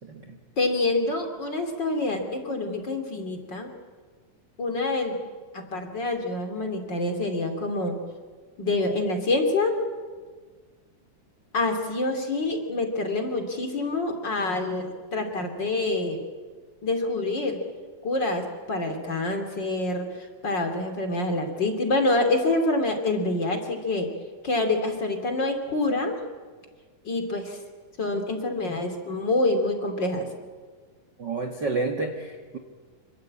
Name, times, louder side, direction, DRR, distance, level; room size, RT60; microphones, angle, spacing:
voice 1, 0.0-0.4 31.2-32.6, right 3 dB, 45° right, 3 dB, 1.6 m, -30 dB
voice 2, 0.6-3.7 4.6-5.2 5.5-8.0 8.6-9.8 11.5-16.2 16.8-17.6 18.0-20.1 20.4-24.1 24.4-26.2 27.0-27.6 28.0-30.3, left 2 dB, 35° left, 5 dB, 2.9 m, -26 dB
27.0 x 24.5 x 8.6 m, 1.5 s
omnidirectional pair, 4.0 m